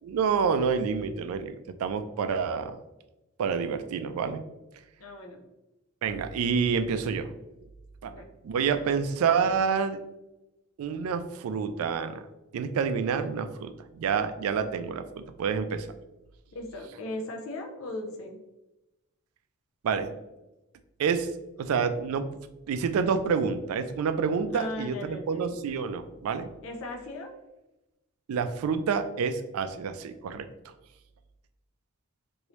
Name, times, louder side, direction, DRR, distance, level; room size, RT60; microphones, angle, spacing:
voice 1, 0.0-2.8 3.4-4.4 6.0-7.3 8.0-8.1 8.4-10.0 10.8-12.2 12.5-15.9 19.8-20.1 21.0-21.3 21.6-22.3 22.7-26.5 28.3-30.5, right 6 dB, 85° right, 9 dB, 0.3 m, -28 dB
voice 2, 5.0-5.4 8.0-8.3 16.5-18.4 24.5-25.6 26.6-27.3, left 2 dB, 75° left, 3 dB, 0.6 m, -38 dB
2.9 x 2.6 x 3.1 m, 0.99 s
head